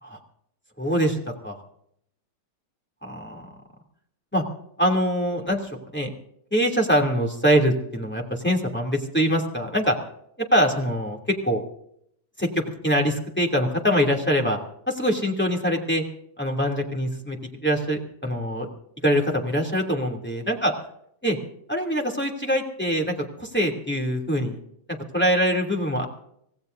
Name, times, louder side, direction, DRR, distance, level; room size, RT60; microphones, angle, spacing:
voice 1, 0.8-1.2 1.4-1.5 3.0-3.4 4.3-4.4 4.8-6.1 6.5-10.0 10.5-11.2 11.4-11.6 12.4-12.5 12.8-14.6 14.9-16.0 16.4-17.4 17.6-18.7 19.0-20.7 21.2-21.4 21.7-24.6 24.9-26.1, equal, 5° left, 1 dB, 2.6 m, -23 dB
25.5 x 17.5 x 2.7 m, 0.72 s
omnidirectional pair, 2.1 m